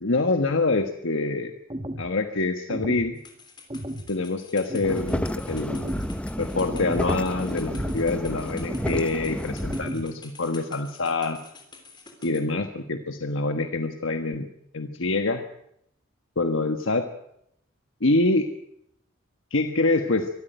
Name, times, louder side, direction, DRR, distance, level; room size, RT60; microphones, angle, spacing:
voice 1, 0.0-1.5 2.0-3.2 4.1-6.0 6.4-11.4 12.2-14.5 14.7-15.4 16.4-17.1 18.0-18.5 19.5-20.3, left 2 dB, 70° left, 6 dB, 1.3 m, -25 dB
sound 1, 1.7-2.1 2.7-3.1 3.7-4.1 4.7-5.1 5.7-6.1 6.7-7.1 7.7-8.1 8.7-9.1 9.7-10.1, right 1 dB, 25° right, 1.3 m, -34 dB
sound 2, 3.2-12.4, left 4 dB, 20° left, 3.4 m, -49 dB
sound 3, 4.8-9.9, equal, 5° left, 0.7 m, -30 dB
24.0 x 13.5 x 9.2 m, 0.76 s
head